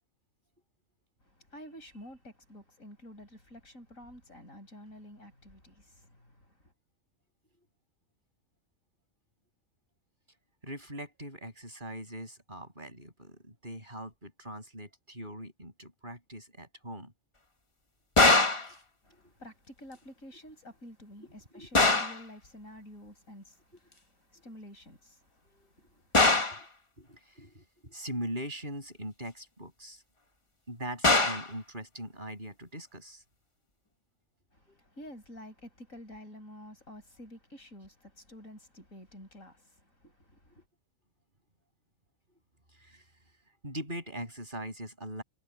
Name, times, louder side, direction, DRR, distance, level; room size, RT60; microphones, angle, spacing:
voice 1, 1.2-6.7 19.0-26.3 34.5-40.6, equal, 85° left, 7.6 m, -50 dB
voice 2, 10.6-17.1 18.4-18.8 19.1-19.2 21.2-21.9 25.4-25.7 26.6-26.7 27.0-30.0 30.7-33.2 34.7-34.8 42.7-43.0 43.6-45.2, equal, 35° right, 8.1 m, -42 dB
sound 1, 18.2-18.7 21.7-22.2 26.1-26.6 31.0-31.5, left 2 dB, 25° left, 1.4 m, -22 dB
omnidirectional pair, 1.4 m